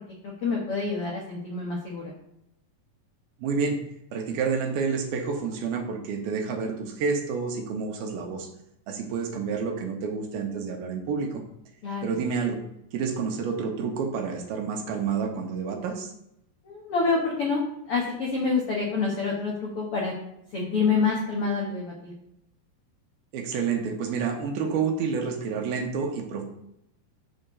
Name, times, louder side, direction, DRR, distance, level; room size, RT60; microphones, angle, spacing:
voice 1, 0.4-2.1 11.8-12.1 16.6-17.6 17.9-20.1 20.5-22.1, left 4 dB, 70° left, -2 dB, 1.3 m, -27 dB
voice 2, 3.4-3.8 4.1-8.5 8.9-11.4 12.0-12.6 12.9-16.1 23.3-26.4, right 5 dB, 75° right, 3 dB, 2.8 m, -29 dB
7.7 x 4.3 x 6.8 m, 0.80 s
omnidirectional pair, 4.7 m